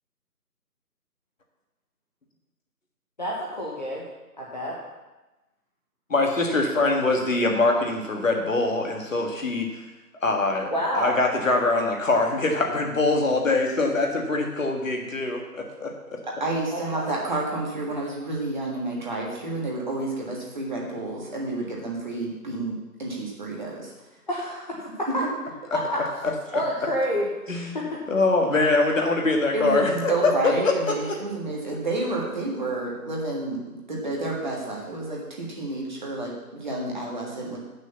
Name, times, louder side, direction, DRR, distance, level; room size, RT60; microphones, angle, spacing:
voice 1, 3.2-4.0 4.4-4.8 10.7-11.1 16.7-17.0 24.3-25.1 25.7-26.0 26.5-27.3 27.7-28.0 31.5-31.6, equal, 30° left, -4 dB, 1.1 m, -28 dB
voice 2, 6.1-9.8 10.2-16.2 25.7-25.8 26.2-26.6 27.5-27.8 28.1-30.7 31.1-31.2, left 3 dB, 55° left, 1 dB, 1.8 m, -23 dB
voice 3, 16.4-22.7 23.0-23.9 25.2-25.3 29.5-37.6, right 2 dB, 30° right, -3 dB, 1.7 m, -30 dB
7.8 x 6.3 x 7.0 m, 1.1 s
figure-of-eight pair, 165°, 47 cm